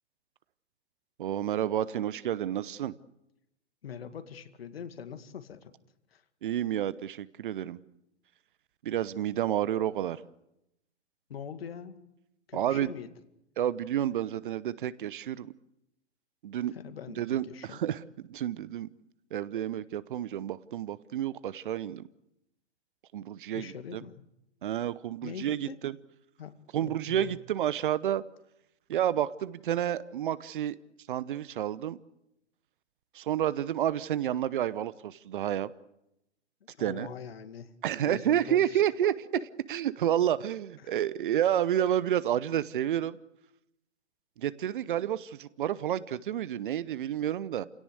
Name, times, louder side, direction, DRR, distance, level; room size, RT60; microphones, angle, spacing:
voice 1, 1.2-2.9 6.4-7.8 8.8-10.2 12.5-12.9 13.6-15.5 16.4-16.7 17.2-18.0 18.3-18.9 19.3-22.0 23.1-24.0 24.6-25.9 26.7-28.2 28.9-30.8 31.1-32.0 33.1-35.7 36.8-37.1 37.8-39.1 39.7-43.2 44.4-47.7, right 11 dB, 50° right, 18 dB, 0.9 m, -30 dB
voice 2, 3.8-5.7 6.1-6.2 11.3-12.0 12.5-13.1 16.7-17.8 23.5-24.2 25.2-25.8 26.4-27.4 36.8-37.7 38.0-39.5 40.8-41.0, left 7 dB, 60° left, 10 dB, 2.2 m, -43 dB
29.0 x 17.5 x 8.1 m, 0.87 s
figure-of-eight pair, 110°, 34 cm